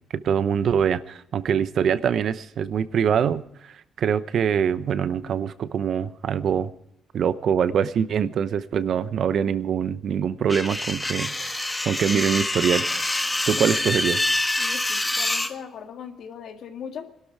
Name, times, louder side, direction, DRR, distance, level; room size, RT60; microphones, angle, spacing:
voice 1, 0.1-6.7 7.1-13.0 13.5-14.2, right 8 dB, 65° right, 14 dB, 0.8 m, -24 dB
sound 1, 10.5-15.5, left 2 dB, 15° left, 1.3 m, -26 dB
voice 2, 14.6-17.1, left 7 dB, 70° left, 5 dB, 1.9 m, -39 dB
21.0 x 12.5 x 4.7 m, 0.78 s
cardioid pair, 90°, 0 cm